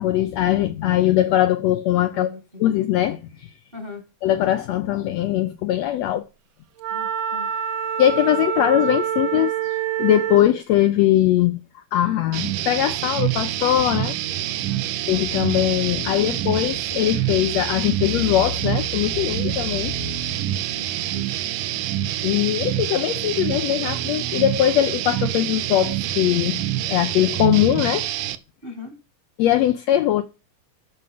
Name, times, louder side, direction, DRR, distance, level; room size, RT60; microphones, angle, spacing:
voice 1, 0.0-2.3 2.6-3.5 4.2-6.2 8.0-14.1 15.1-20.1 20.4-20.6 21.0-21.1 22.2-28.1 29.4-30.2, left 12 dB, 80° left, 1.5 m, -21 dB
voice 2, 2.1-2.6 3.7-4.0 6.9-7.5 14.6-14.8 20.7-21.4 28.6-28.9, left 3 dB, 25° right, 1.2 m, -39 dB
Wind instrument woodwind instrument, 6.8-10.5, right 9 dB, 70° right, 1.9 m, -26 dB
sound 1, 12.3-28.4, right 13 dB, 90° right, 2.3 m, -26 dB
7.6 x 6.3 x 7.6 m
omnidirectional pair, 3.6 m